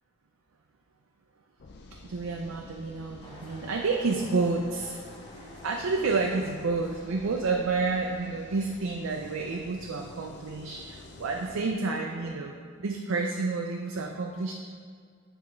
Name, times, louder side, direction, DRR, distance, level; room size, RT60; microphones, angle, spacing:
sound 1, 1.6-11.6, left 2 dB, 55° left, 0.4 m, -49 dB
voice 1, 2.0-5.0 5.3-14.5, right 3 dB, 90° right, 1 dB, 0.5 m, -30 dB
sound 2, 3.2-9.5, equal, 20° left, 1.1 m, -52 dB
8.9 x 3.5 x 3.2 m, 2.1 s
head